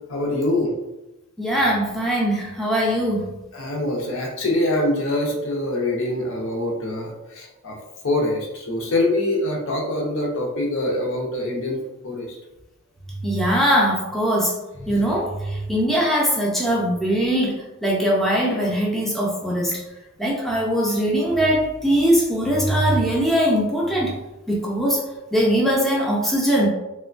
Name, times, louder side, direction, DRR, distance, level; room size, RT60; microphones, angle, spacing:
voice 1, 0.1-0.7 3.5-7.8 8.0-11.8 12.0-12.3, left 1 dB, 65° left, -1 dB, 0.6 m, -24 dB
voice 2, 1.4-3.3 13.2-14.6 14.8-17.5 17.8-19.7 20.2-24.1 24.5-25.0 25.3-26.7, equal, ahead, -4 dB, 0.4 m, -21 dB
3.0 x 2.1 x 2.4 m, 0.97 s
head